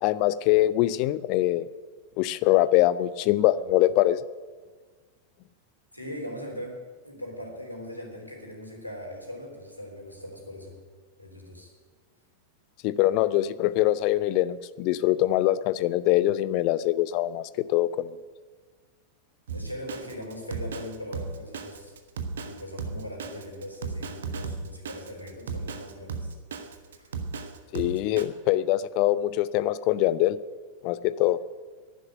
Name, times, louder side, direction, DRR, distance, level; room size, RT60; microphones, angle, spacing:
voice 1, 0.0-1.7 2.2-4.2 12.8-18.1 27.7-30.4 30.8-31.4, left 15 dB, 45° left, 17 dB, 0.6 m, -23 dB
voice 2, 5.9-10.8 11.2-11.7 19.5-21.9 22.4-26.3 26.9-27.1, left 1 dB, 85° left, 1 dB, 3.6 m, -40 dB
Drum kit, 19.5-28.2, right 4 dB, 65° right, 1.3 m, -35 dB
11.5 x 10.5 x 9.8 m, 1.4 s
figure-of-eight pair, 90°, 0 cm